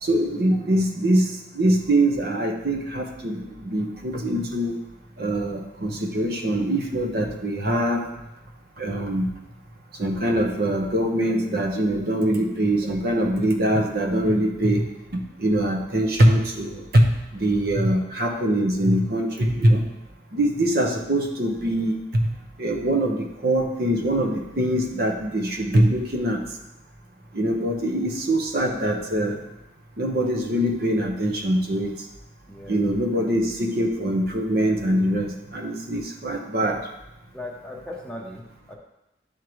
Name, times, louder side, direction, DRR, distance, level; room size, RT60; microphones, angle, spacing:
voice 1, 0.0-4.8 5.2-8.0 8.8-9.3 10.0-14.8 15.1-19.8 20.3-22.0 22.6-26.4 27.3-29.4 30.0-32.0 32.7-36.8, right 1 dB, 55° right, 1 dB, 0.8 m, -23 dB
voice 2, 29.1-29.4 32.5-33.2 37.3-38.8, left 1 dB, 5° left, -2 dB, 0.7 m, -39 dB
10.5 x 3.7 x 3.1 m, 0.92 s
head